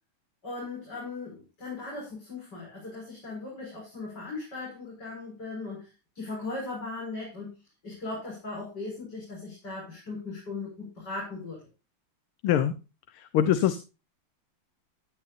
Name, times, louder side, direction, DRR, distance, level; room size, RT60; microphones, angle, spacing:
voice 1, 0.4-5.9 6.1-7.5 7.8-11.6, left 3 dB, 50° left, -4 dB, 6.4 m, -38 dB
voice 2, 12.4-12.7 13.3-13.8, left 10 dB, 85° left, 11 dB, 1.8 m, -22 dB
15.5 x 12.0 x 2.6 m, 0.29 s
omnidirectional pair, 2.3 m